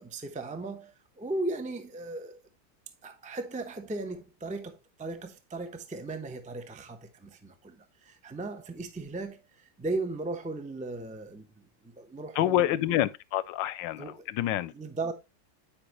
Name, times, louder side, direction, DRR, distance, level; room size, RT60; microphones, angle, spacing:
voice 1, 0.0-2.4 3.0-13.0 14.0-14.3 14.7-15.1, right 2 dB, 10° right, 0.5 m, -37 dB
voice 2, 12.4-14.7, left 13 dB, 85° left, 1.3 m, -27 dB
10.0 x 5.3 x 3.0 m
omnidirectional pair, 1.9 m